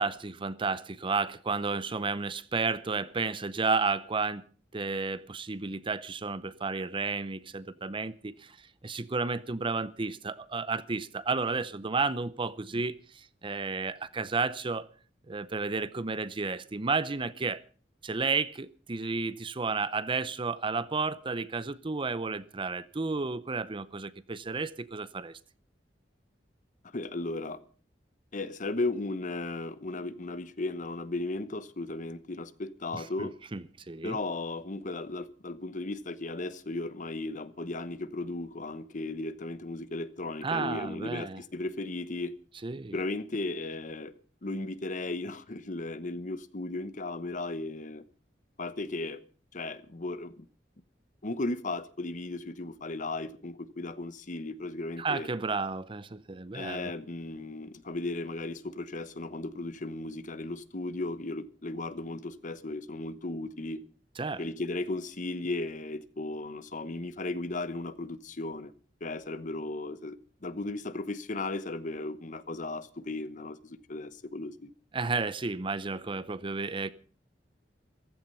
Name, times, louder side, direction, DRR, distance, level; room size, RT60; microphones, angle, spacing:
voice 1, 0.0-4.4 4.7-8.6 8.8-14.9 15.3-17.6 18.0-25.4 32.9-34.2 40.4-41.4 42.6-43.0 55.0-56.9 64.2-64.4 74.9-76.9, right 4 dB, 30° right, 0.6 m, -32 dB
voice 2, 26.9-27.6 28.3-33.3 34.0-42.3 42.9-44.1 44.4-48.0 48.6-49.2 49.5-50.5 51.2-55.3 56.5-63.8 64.4-68.7 69.0-74.7, left 2 dB, 45° left, 1.0 m, -36 dB
15.0 x 14.0 x 5.5 m
head